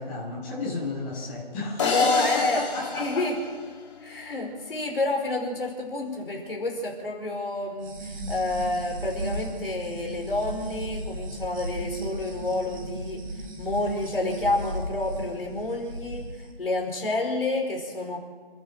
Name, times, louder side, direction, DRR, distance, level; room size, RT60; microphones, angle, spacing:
voice 1, 0.0-3.3, left 3 dB, 15° left, -6 dB, 6.9 m, -33 dB
voice 2, 1.8-2.6 2.9-3.3 4.0-18.2, left 2 dB, 65° left, 1 dB, 5.1 m, -29 dB
sound 1, 1.8-4.1, left 4 dB, 30° left, 3.0 m, -29 dB
sound 2, 7.8-16.4, right 1 dB, 35° right, 5.0 m, -36 dB
28.0 x 12.0 x 7.9 m, 1.5 s
figure-of-eight pair, 160°, 31 cm